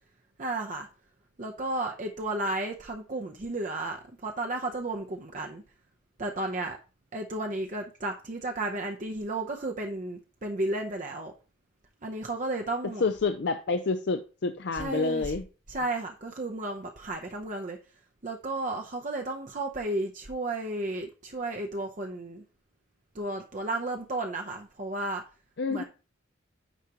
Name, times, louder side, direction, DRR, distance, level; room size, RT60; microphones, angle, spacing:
voice 1, 0.4-0.9 1.4-5.6 6.2-6.8 7.1-11.3 12.0-13.1 14.7-15.3 15.7-17.8 18.2-22.4 23.1-25.2 25.7-25.8, right 2 dB, 40° right, 0.7 m, -33 dB
voice 2, 13.0-15.4 25.6-25.8, left 4 dB, 60° left, 0.5 m, -28 dB
9.1 x 5.0 x 2.9 m
head